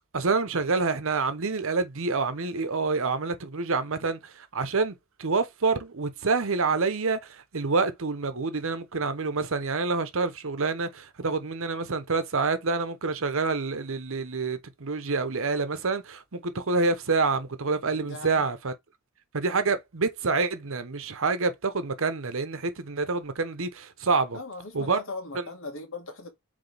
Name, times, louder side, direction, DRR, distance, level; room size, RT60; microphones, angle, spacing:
voice 1, 0.1-18.7 19.3-24.4 24.7-25.0 25.3-25.4, right 4 dB, 65° right, 1.0 m, -27 dB
voice 2, 17.9-18.4 24.3-26.3, left 3 dB, 65° left, 1.8 m, -39 dB
7.9 x 3.5 x 3.4 m
head